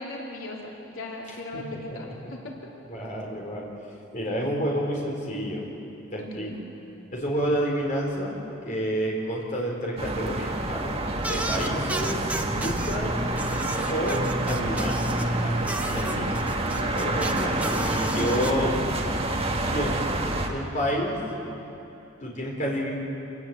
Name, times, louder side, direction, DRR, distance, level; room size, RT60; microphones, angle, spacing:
voice 1, 0.0-2.6 6.2-6.6 15.8-16.3 16.7-17.3, left 1 dB, 85° left, -2 dB, 3.3 m, -38 dB
voice 2, 1.5-2.3 2.9-3.7 4.1-5.7 6.1-6.5 7.1-8.4 8.6-10.9 11.3-12.2 12.5-13.2 13.8-15.1 15.4-15.7 15.9-16.3 16.9-18.7 19.7-21.2 22.2-22.9, equal, 40° left, -2 dB, 4.4 m, -29 dB
sound 1, 10.0-20.5, right 1 dB, 30° right, 1.9 m, -27 dB
sound 2, 11.2-13.0 13.3-15.3 15.6-18.5, right 2 dB, 5° right, 1.0 m, -34 dB
26.5 x 19.0 x 8.0 m, 2.9 s
head